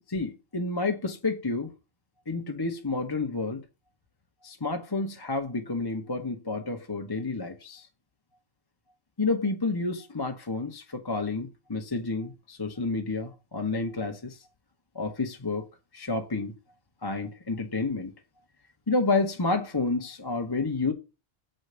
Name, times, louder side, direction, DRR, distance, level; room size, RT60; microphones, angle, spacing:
voice 1, 0.1-1.7 2.3-3.6 4.4-7.9 9.2-14.4 14.9-15.7 15.9-16.5 17.0-18.1 18.9-20.9, left 3 dB, 20° left, 0.9 m, -30 dB
7.6 x 4.8 x 6.7 m
omnidirectional pair, 1.3 m